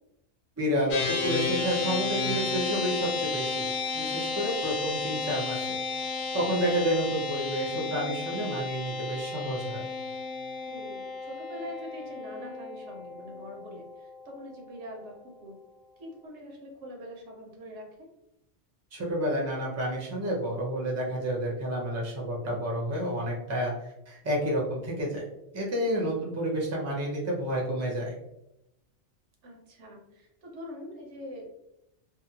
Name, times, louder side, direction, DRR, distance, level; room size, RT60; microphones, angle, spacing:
voice 1, 0.6-3.6 3.9-5.7 6.3-9.9 18.9-23.7 24.1-25.2 25.5-28.1, equal, 20° right, -3 dB, 0.5 m, -30 dB
sound 1, 0.9-14.4, left 4 dB, 65° left, 0.8 m, -33 dB
voice 2, 4.4-4.8 10.7-15.6 16.0-18.1 26.0-26.3 29.4-31.5, equal, 80° right, 0 dB, 1.0 m, -44 dB
2.6 x 2.1 x 2.7 m, 0.84 s
omnidirectional pair, 1.2 m